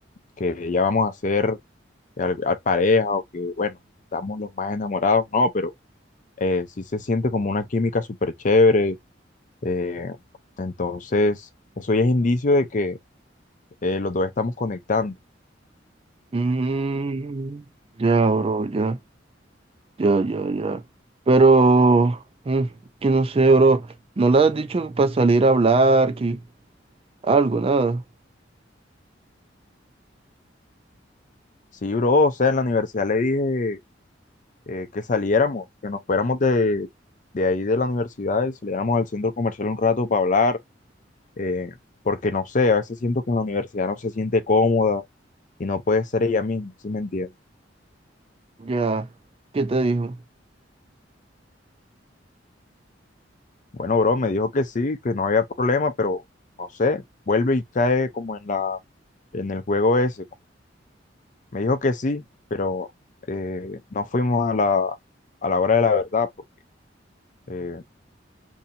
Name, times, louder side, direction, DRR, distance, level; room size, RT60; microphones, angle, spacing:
voice 1, 0.4-1.6 2.2-3.7 4.1-5.7 6.4-6.7 6.9-9.0 9.6-10.2 10.6-11.4 11.8-13.0 13.8-15.1 31.8-33.8 34.7-36.9 37.3-40.6 41.4-41.7 42.0-45.0 45.6-47.3 53.7-56.2 56.6-58.8 59.3-60.2 61.5-62.2 62.5-62.9 63.3-65.0 65.4-66.3 67.5-67.8, left 3 dB, 45° left, 0.5 m, -23 dB
voice 2, 16.3-17.6 18.0-19.0 20.0-20.8 21.3-22.7 23.0-23.9 24.2-26.4 27.2-28.0 48.6-49.1 49.5-50.1, right 3 dB, 30° right, 0.4 m, -19 dB
2.7 x 2.6 x 4.1 m
head